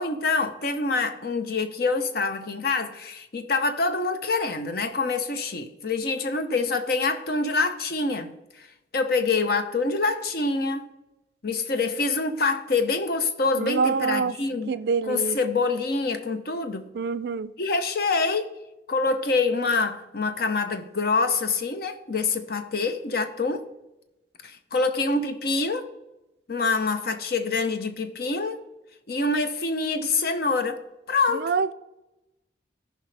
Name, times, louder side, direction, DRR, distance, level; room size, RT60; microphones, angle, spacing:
voice 1, 0.0-8.3 8.6-8.7 8.9-10.8 11.4-14.7 15.1-16.9 17.6-18.5 18.9-23.6 24.4-25.9 26.5-28.6 29.1-30.8 31.1-31.5, left 3 dB, 55° left, 0.7 m, -26 dB
voice 2, 13.6-14.3 14.7-15.4 16.9-17.5 31.3-31.7, right 5 dB, 60° right, 0.3 m, -25 dB
14.0 x 5.4 x 3.3 m
head